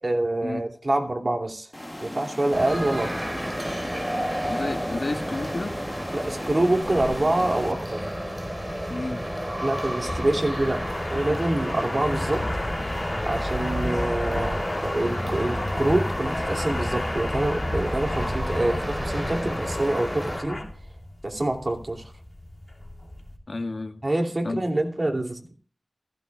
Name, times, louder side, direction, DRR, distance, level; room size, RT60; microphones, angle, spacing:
voice 1, 0.0-1.7 2.0-3.1 6.1-8.1 9.6-10.8 11.1-12.5 13.2-20.6 21.2-22.1 24.0-25.5, right 1 dB, 50° right, 3 dB, 2.8 m, -26 dB
sound 1, 1.7-7.7, left 1 dB, 15° left, 1.0 m, -37 dB
sound 2, 2.5-20.4, equal, 20° right, 4.7 m, -32 dB
voice 2, 4.5-5.8 8.9-9.2 23.5-24.0 24.4-24.6, left 2 dB, 70° left, 5 dB, 1.7 m, -31 dB
sound 3, 6.8-23.4, left 1 dB, 35° left, 3.0 m, -32 dB
15.5 x 15.5 x 2.4 m, 0.42 s
wide cardioid pair, 45°, 0 cm